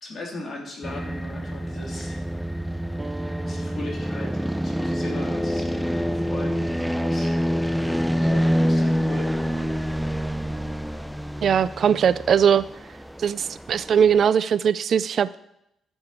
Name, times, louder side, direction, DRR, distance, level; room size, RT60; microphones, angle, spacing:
voice 1, 0.0-2.2 3.4-6.6 7.0-7.3 8.1-9.3, left 2 dB, 45° left, 0 dB, 3.1 m, -38 dB
sound 1, 0.8-14.3, equal, ahead, 0.5 m, -26 dB
sound 2, 3.0-8.1, right 2 dB, 20° right, 0.9 m, -43 dB
voice 2, 11.4-12.6 13.2-15.3, right 7 dB, 55° right, 16 dB, 0.4 m, -20 dB
11.5 x 7.0 x 6.7 m, 0.81 s
cardioid pair, 90°, 0 cm